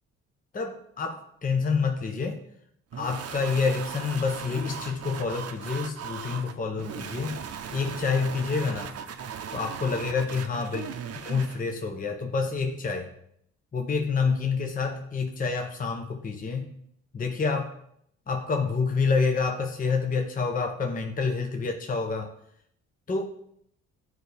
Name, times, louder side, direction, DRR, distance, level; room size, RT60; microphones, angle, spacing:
voice 1, 0.5-2.4 3.0-7.4 7.7-9.0 9.5-10.8 11.2-13.1 13.7-16.7 17.1-17.7 18.3-22.3 23.1-23.2, left 4 dB, 30° left, 4 dB, 0.8 m, -28 dB
sound 1, 2.9-11.6, right 7 dB, 55° right, 0.7 m, -38 dB
11.0 x 4.7 x 3.4 m, 0.72 s
cardioid pair, 90°, 30 cm